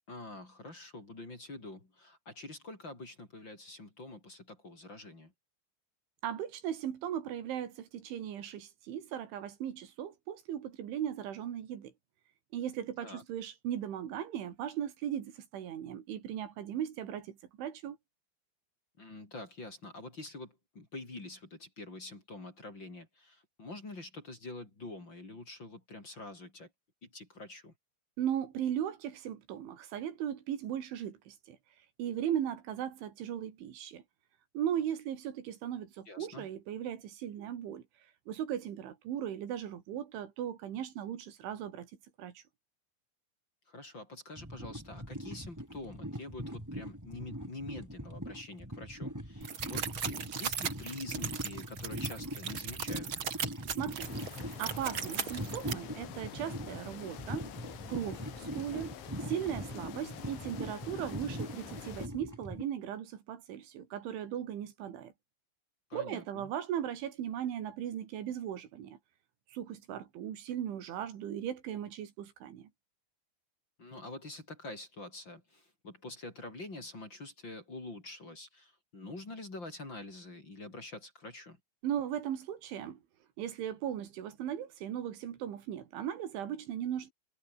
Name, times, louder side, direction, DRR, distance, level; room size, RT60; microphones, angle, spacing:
voice 1, 0.1-5.3 13.0-13.2 19.0-26.7 27.0-27.7 36.1-36.5 43.7-53.1 65.9-66.5 73.8-81.6, left 2 dB, 25° left, 4.9 m, -46 dB
voice 2, 6.2-11.9 12.5-18.0 28.2-31.6 32.0-34.0 34.5-37.8 38.3-41.9 42.2-42.4 53.6-54.1 54.6-57.5 57.9-59.0 59.3-65.1 65.9-69.0 69.5-72.7 81.8-83.0 83.4-87.1, right 10 dB, 80° right, 5.0 m, -37 dB
sound 1, 44.4-62.6, equal, 5° right, 5.4 m, -42 dB
sound 2, 49.4-55.7, right 7 dB, 65° right, 1.3 m, -38 dB
sound 3, 54.0-62.1, left 10 dB, 80° left, 5.0 m, -47 dB
omnidirectional pair, 5.4 m